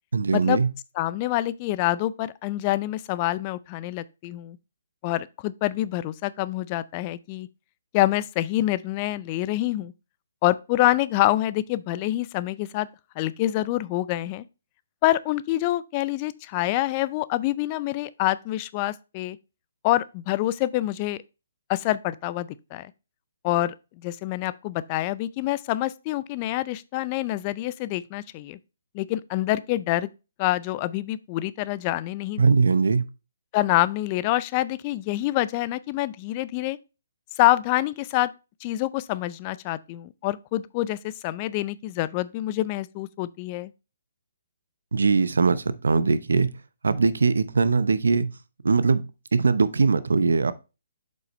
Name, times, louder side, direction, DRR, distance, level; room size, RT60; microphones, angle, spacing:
voice 1, 0.1-0.7 32.4-33.0 44.9-46.5 46.8-48.3 48.6-49.0 49.3-50.5, right 4 dB, 80° right, 0.7 m, -21 dB
voice 2, 1.0-4.6 5.0-7.5 7.9-9.9 10.4-12.9 13.2-14.4 15.0-19.4 19.8-21.2 21.7-22.9 23.4-23.7 24.0-28.6 28.9-30.1 30.4-32.4 33.5-36.8 37.4-38.3 38.6-43.7, left 15 dB, 30° left, 0.4 m, -26 dB
7.6 x 5.4 x 3.1 m
hypercardioid pair, 145°, 0 cm